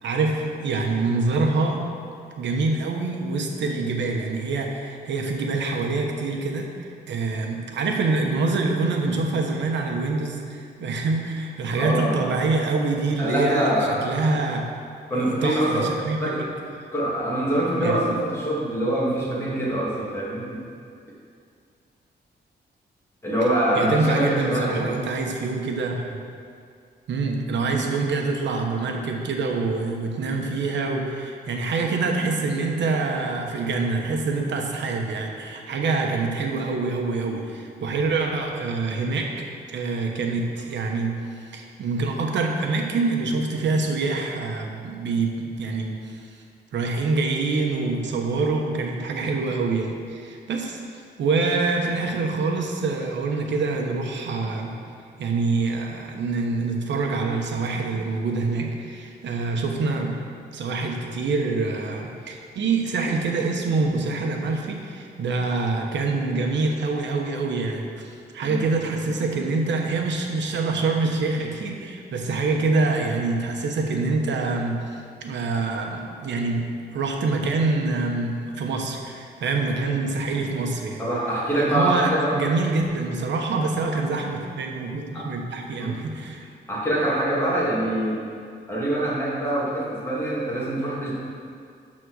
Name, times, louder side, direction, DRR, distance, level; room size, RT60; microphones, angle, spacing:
voice 1, 0.0-1.8 2.4-6.7 7.1-14.6 15.1-16.4 17.8-17.9 23.7-26.2 27.1-41.1 41.4-46.0 46.7-50.8 51.2-54.7 55.2-60.1 60.5-81.0 81.7-86.5, right 3 dB, 90° right, 1 dB, 1.1 m, -25 dB
voice 2, 11.8-12.2 13.2-14.2 15.1-15.9 16.2-16.4 16.9-20.6 23.2-25.0 27.6-27.8 68.4-68.6 81.0-82.3 85.1-85.3 85.8-86.0 86.7-88.2 88.7-91.1, right 1 dB, 15° left, -7 dB, 2.5 m, -24 dB
12.5 x 4.3 x 6.4 m, 2.3 s
wide cardioid pair, 160°, 18 cm